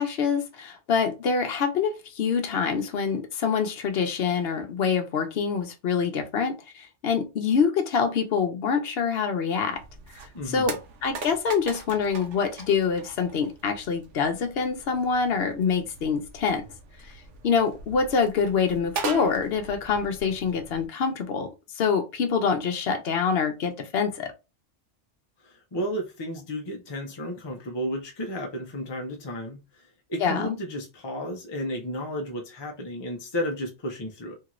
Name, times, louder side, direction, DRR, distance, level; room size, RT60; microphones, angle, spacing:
voice 1, 0.0-9.8 10.1-16.7 17.4-21.5 21.8-24.3 30.2-30.6, left 6 dB, 65° left, 0.8 m, -25 dB
sound 1, 9.7-20.9, right 4 dB, 80° right, 0.9 m, -40 dB
voice 2, 10.3-10.8 25.4-34.3, equal, 40° left, 0.4 m, -33 dB
2.8 x 2.4 x 2.9 m
omnidirectional pair, 1.2 m